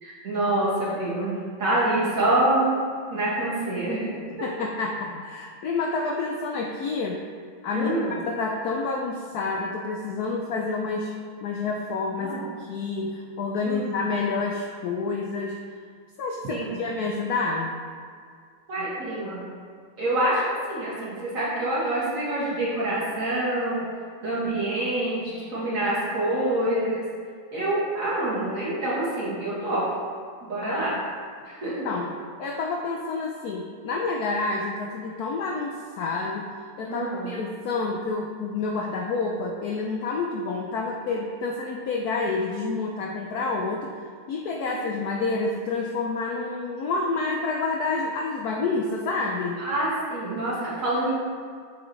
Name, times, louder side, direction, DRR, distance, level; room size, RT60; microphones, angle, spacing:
voice 1, 0.0-2.7 3.1-4.1 7.7-8.1 12.2-12.4 13.6-13.9 16.5-16.8 18.7-19.4 20.0-20.4 20.7-23.8 24.2-27.0 27.5-29.8 30.5-30.9 31.5-31.9 36.9-37.3 44.6-44.7 49.6-51.1, right 1 dB, 40° right, -8 dB, 2.1 m, -26 dB
voice 2, 4.3-7.2 7.6-7.9 8.3-11.1 11.4-15.6 16.2-17.8 30.6-30.9 31.8-44.0 44.3-49.6, left 3 dB, 80° left, 1 dB, 0.8 m, -29 dB
7.8 x 5.9 x 3.1 m, 2.1 s
omnidirectional pair, 2.3 m